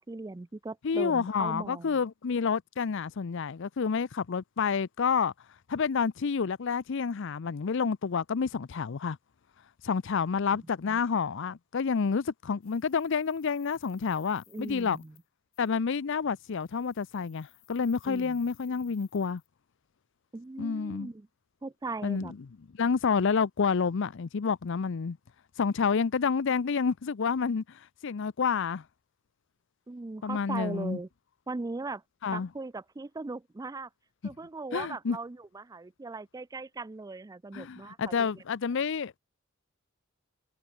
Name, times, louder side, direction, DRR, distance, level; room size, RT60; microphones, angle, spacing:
voice 1, 0.0-2.0 10.9-11.0 14.5-15.1 18.1-18.4 20.3-21.3 21.6-22.3 29.9-31.1 31.5-32.0 32.3-33.9 34.2-38.4, right 3 dB, 15° right, 0.4 m, -39 dB
voice 2, 0.8-5.3 5.7-9.2 9.8-15.0 15.6-19.4 20.6-21.1 22.0-22.4 22.8-25.2 25.6-28.8 30.2-31.0 32.2-32.5 34.7-35.2 37.5-39.2, left 5 dB, 60° left, 0.5 m, -29 dB
sound 1, 12.6-15.3 15.5-15.8 16.3-19.5, left 19 dB, 85° left, 6.2 m, -62 dB
head